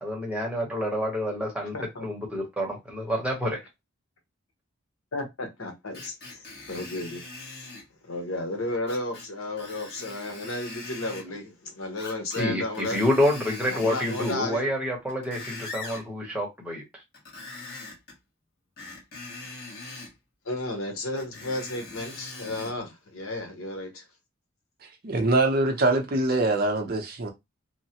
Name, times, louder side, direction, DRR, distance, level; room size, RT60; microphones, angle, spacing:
voice 1, 0.0-1.7 2.0-3.6 12.4-16.8, left 1 dB, 5° right, 0.9 m, -28 dB
voice 2, 1.6-2.1 5.1-7.7 8.0-13.0 13.7-14.7 20.4-24.0, left 2 dB, 85° left, 0.9 m, -33 dB
Screech, 5.9-7.9 8.9-9.3 9.6-11.3 12.0-12.5 12.7-14.4 14.9-16.0 17.1-18.1 18.8-20.1 21.2-22.8 23.3-23.4, left 3 dB, 45° left, 1.3 m, -41 dB
voice 3, 25.0-27.3, right 2 dB, 45° right, 0.6 m, -23 dB
3.1 x 2.1 x 2.8 m
head